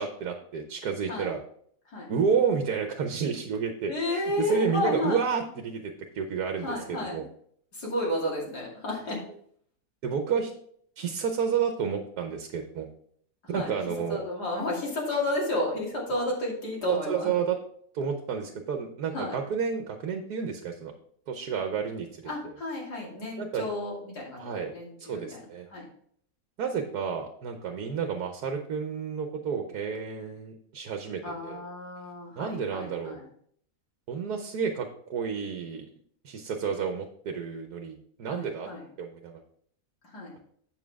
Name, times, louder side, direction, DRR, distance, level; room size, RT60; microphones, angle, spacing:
voice 1, 0.0-1.4 2.1-3.9 4.4-7.2 10.0-10.5 11.0-12.9 13.5-14.2 17.1-17.6 17.9-20.9 21.3-22.1 23.4-23.7 24.4-24.7 25.0-25.7 26.6-31.6 32.4-33.2 34.1-35.9 36.2-38.7 39.0-39.4, right 6 dB, 75° right, 5 dB, 1.4 m, -30 dB
voice 2, 3.9-5.2 6.6-7.3 7.7-9.2 13.5-13.7 14.1-17.3 19.1-19.4 22.3-25.4 25.7-25.8 31.2-33.2 38.3-38.8 40.1-40.3, left 1 dB, 85° left, -3 dB, 3.1 m, -32 dB
7.7 x 7.3 x 3.5 m, 0.62 s
omnidirectional pair, 1.7 m